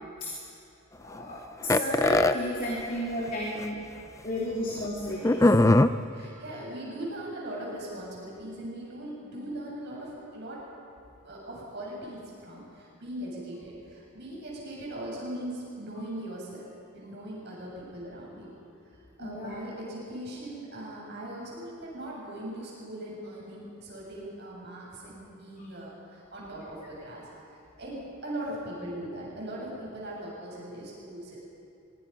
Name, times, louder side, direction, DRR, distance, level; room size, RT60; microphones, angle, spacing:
voice 1, 1.0-3.8 4.2-5.4 19.2-19.6, left 1 dB, 40° left, -4 dB, 3.1 m, -32 dB
sound 1, 1.7-2.3 3.3-3.4 3.6-3.7 5.2-5.9, left 2 dB, 15° left, 0.4 m, -19 dB
voice 2, 3.9-4.3 5.7-10.6 11.2-16.7 16.9-18.5 19.2-31.4, right 1 dB, 55° right, -5 dB, 7.7 m, -40 dB
24.0 x 23.0 x 5.7 m, 2.6 s
head